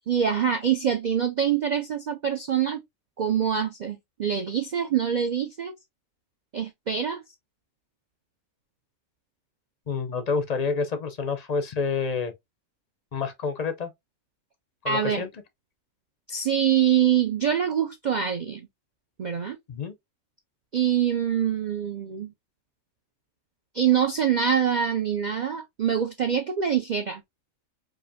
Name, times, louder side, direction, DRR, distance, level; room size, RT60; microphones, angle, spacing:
voice 1, 0.1-2.8 3.2-5.7 6.5-7.2 14.9-15.2 16.3-18.7 19.2-19.6 20.7-22.3 23.7-27.2, right 8 dB, 65° right, 0.4 m, -25 dB
voice 2, 9.9-12.3 13.1-13.9 14.8-15.3 19.7-19.9, left 5 dB, 50° left, 0.5 m, -28 dB
4.8 x 2.6 x 2.6 m
omnidirectional pair, 1.3 m